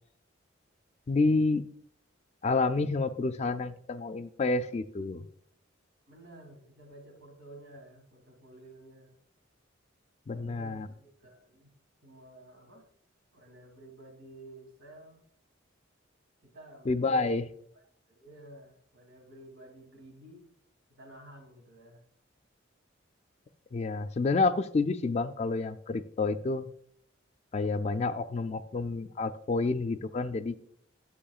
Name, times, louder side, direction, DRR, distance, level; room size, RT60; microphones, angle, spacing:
voice 1, 1.1-1.6 2.4-5.2 10.3-10.9 16.9-17.4 23.7-26.7 27.5-30.6, left 3 dB, 35° left, 11 dB, 0.3 m, -29 dB
voice 2, 6.1-9.2 10.3-11.7 12.0-12.9 13.3-15.2 16.4-17.4 18.1-20.5 20.9-22.0, right 1 dB, 90° right, 3 dB, 1.9 m, -52 dB
10.0 x 7.2 x 2.4 m, 0.67 s
head